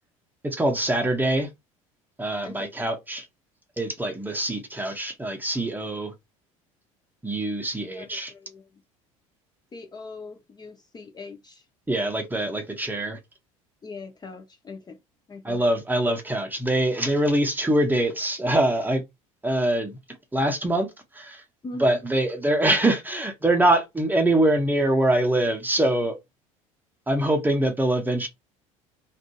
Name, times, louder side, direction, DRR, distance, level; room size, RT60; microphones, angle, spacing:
voice 1, 0.4-1.5 2.2-3.3 3.8-6.1 7.2-8.3 11.9-13.2 15.4-19.0 19.4-20.0 20.3-21.4 21.8-26.2 27.1-28.3, right 1 dB, 10° right, 0.7 m, -24 dB
voice 2, 2.4-2.7 7.9-8.7 9.7-11.6 13.8-15.0 15.3-15.6 21.6-22.0, left 3 dB, 25° left, 0.6 m, -41 dB
2.5 x 2.4 x 2.2 m
hypercardioid pair, 70°, 18 cm